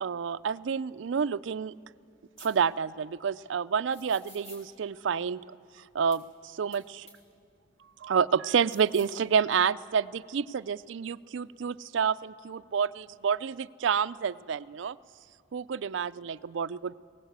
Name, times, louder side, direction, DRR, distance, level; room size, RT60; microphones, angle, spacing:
voice 1, 0.0-1.7 2.4-5.4 5.9-7.1 8.0-15.0 15.5-16.9, right 6 dB, 80° right, 16 dB, 0.4 m, -29 dB
sound 1, 2.4-2.5 3.9-4.6 6.1-6.2 6.7-6.8 7.1-7.2 8.5-9.2, left 1 dB, 35° left, 4.9 m, -51 dB
20.5 x 18.0 x 8.1 m, 2.3 s
head